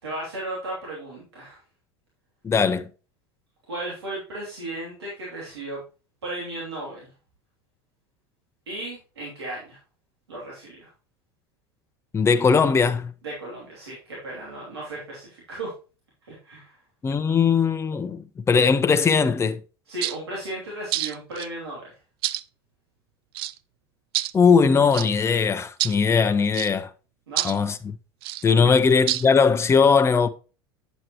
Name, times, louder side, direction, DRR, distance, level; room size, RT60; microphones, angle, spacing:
voice 1, 0.0-1.6 3.7-5.8 6.2-7.1 8.7-9.8 10.3-10.9 13.2-15.7 16.2-16.8 19.9-21.9 27.3-27.5 28.6-28.8, right 1 dB, 85° right, 2.9 m, -35 dB
voice 2, 2.4-2.9 12.1-13.1 17.0-19.6 24.3-26.9 27.4-27.9 28.4-30.3, left 5 dB, 20° left, 0.6 m, -19 dB
sound 1, 20.0-20.2 20.9-21.5 22.2-22.4 23.3-23.6 24.1-24.3 24.9-25.1 25.8-26.0 26.5-26.7 27.4-27.6 28.2-28.4 29.1-29.3, right 16 dB, 70° right, 0.4 m, -27 dB
8.1 x 7.5 x 3.0 m
hypercardioid pair, 85°, 13 cm